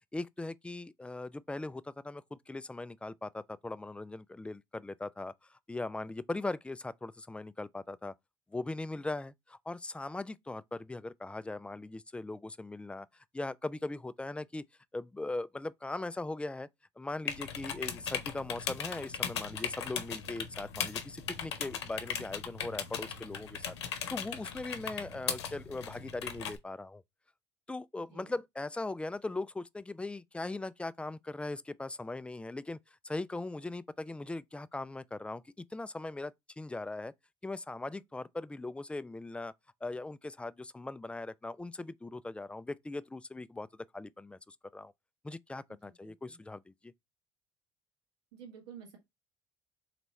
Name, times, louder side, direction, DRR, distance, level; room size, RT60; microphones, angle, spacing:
voice 1, 0.1-8.1 8.5-13.1 13.3-14.7 14.9-16.7 17.0-23.7 24.1-27.0 27.7-32.8 33.0-37.1 37.4-39.5 39.8-43.7 43.9-44.9 45.2-46.9, left 2 dB, 10° left, 0.3 m, -40 dB
sound 1, 17.3-26.6, left 8 dB, 85° left, 0.7 m, -38 dB
voice 2, 45.8-46.4 48.3-49.0, right 7 dB, 80° right, 1.7 m, -51 dB
4.0 x 3.4 x 3.1 m
hypercardioid pair, 60°, 14 cm